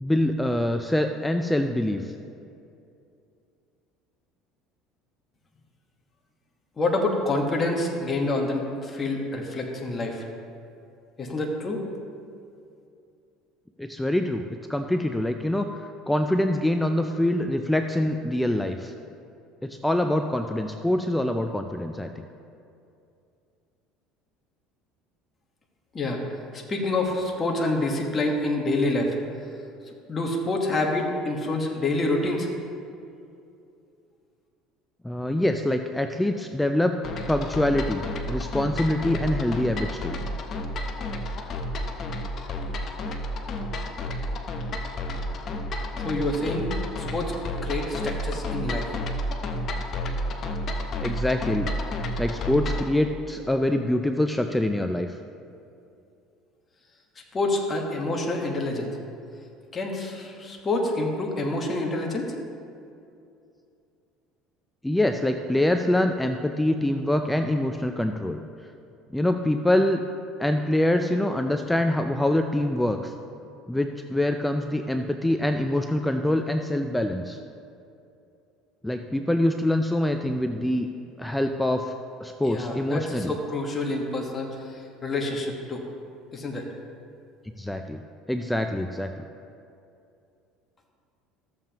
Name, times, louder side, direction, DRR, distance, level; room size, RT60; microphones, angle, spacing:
voice 1, 0.0-2.1 13.8-18.9 19.6-22.3 35.0-37.0 37.3-40.2 51.0-51.7 52.2-55.2 64.8-68.4 69.1-70.0 70.4-73.1 73.7-77.4 78.8-80.9 81.2-81.9 82.2-83.3 87.6-88.0 88.3-89.1, left 1 dB, 5° left, 6 dB, 0.3 m, -25 dB
voice 2, 6.8-10.2 11.2-11.8 25.9-26.2 26.5-29.2 30.1-32.5 46.0-47.3 47.6-48.9 57.3-59.0 59.7-62.3 82.4-85.8 86.3-86.7, left 2 dB, 25° left, 0 dB, 1.2 m, -27 dB
sound 1, 37.0-52.9, left 1 dB, 40° left, 0.8 m, -31 dB
13.5 x 7.3 x 2.9 m, 2.6 s
cardioid pair, 125°, 0 cm